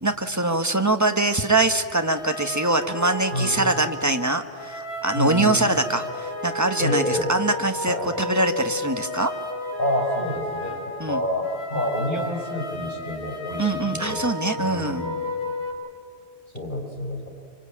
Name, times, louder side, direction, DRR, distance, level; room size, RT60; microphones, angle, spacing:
voice 1, 0.0-9.3 11.0-11.2 13.6-15.1, right 2 dB, 15° right, 7 dB, 1.2 m, -23 dB
sound 1, 2.0-15.7, left 1 dB, 60° left, 4.3 m, -33 dB
voice 2, 3.3-3.6 5.1-5.7 6.8-7.3 7.9-8.1 9.8-10.8 11.0-14.2 14.6-15.1 16.5-17.3, left 1 dB, 45° left, 0 dB, 5.3 m, -28 dB
25.5 x 25.0 x 8.6 m, 2.3 s
omnidirectional pair, 1.2 m